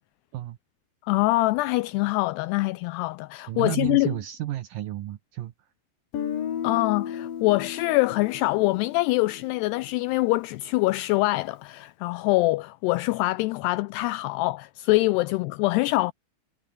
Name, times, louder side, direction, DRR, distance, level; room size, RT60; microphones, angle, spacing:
voice 1, 1.0-4.1 6.6-16.1, left 20 dB, 85° left, 2.4 m, -24 dB
voice 2, 3.5-5.5, right 13 dB, 70° right, 2.2 m, -32 dB
Guitar, 6.1-10.1, left 9 dB, 55° left, 3.8 m, -34 dB
omnidirectional pair, 5.2 m